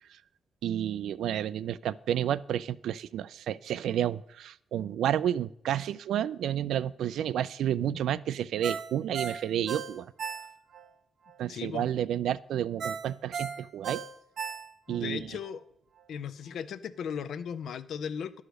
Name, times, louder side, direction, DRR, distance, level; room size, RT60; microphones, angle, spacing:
voice 1, 0.6-10.1 11.4-14.0 14.9-15.2, right 10 dB, 80° right, 18 dB, 0.3 m, -30 dB
Ringtone, 8.6-10.9 11.3-11.4 12.8-15.0 15.4-15.5, right 6 dB, 50° right, 0.7 m, -36 dB
voice 2, 11.5-11.9 14.9-15.6 16.1-18.4, left 7 dB, 65° left, 14 dB, 0.5 m, -37 dB
11.5 x 4.9 x 6.3 m, 0.74 s
wide cardioid pair, 170°, 0 cm